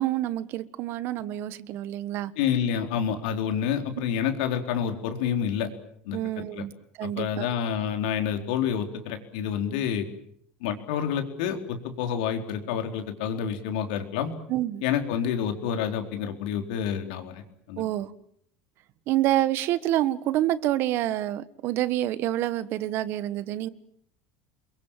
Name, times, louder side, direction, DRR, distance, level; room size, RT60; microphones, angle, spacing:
voice 1, 0.0-2.3 6.1-6.7 7.0-7.5 14.5-14.8 17.8-18.1 19.1-23.7, right 14 dB, 55° right, 15 dB, 1.4 m, -27 dB
voice 2, 2.4-5.7 6.0-6.6 7.0-10.0 10.6-14.3 14.8-17.4 17.7-17.8, left 8 dB, 80° left, 5 dB, 4.2 m, -28 dB
28.0 x 22.5 x 7.5 m, 0.68 s
supercardioid pair, 125°, 5 cm